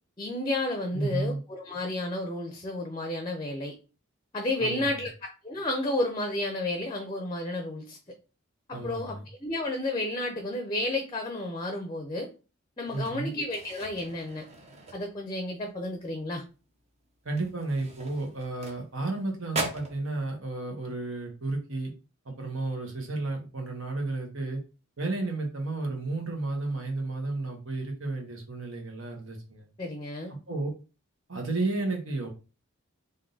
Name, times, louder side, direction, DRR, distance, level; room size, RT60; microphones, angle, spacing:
voice 1, 0.2-3.7 4.3-8.0 8.7-12.3 12.8-14.4 14.9-16.4 29.8-30.3, left 1 dB, 20° left, 3 dB, 0.5 m, -32 dB
voice 2, 0.9-1.4 4.6-4.9 8.7-9.2 12.9-13.3 17.2-21.9 22.2-24.6 25.0-29.7 30.5-30.7 31.3-32.3, right 2 dB, 70° right, 2 dB, 1.2 m, -32 dB
sound 1, 12.9-15.5 15.8-16.1 16.5-16.6 17.2-19.2 19.5-20.0, right 2 dB, 30° right, 0.7 m, -39 dB
3.6 x 2.7 x 3.8 m, 0.33 s
head